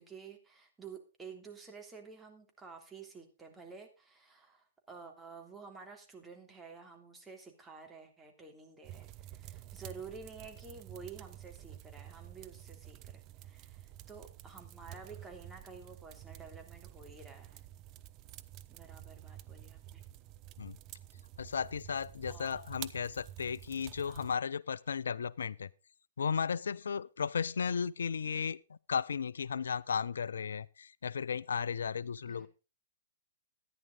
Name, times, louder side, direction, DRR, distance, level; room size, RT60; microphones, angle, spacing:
voice 1, 0.0-17.6 18.7-20.0 22.3-22.6 24.1-24.3 32.3-32.5, right 5 dB, 10° right, 3.2 m, -51 dB
sound 1, 8.8-24.4, right 13 dB, 35° right, 0.7 m, -50 dB
voice 2, 21.4-25.7 26.2-32.5, left 6 dB, 75° left, 0.5 m, -35 dB
14.0 x 10.5 x 3.8 m
hypercardioid pair, 120°, 0 cm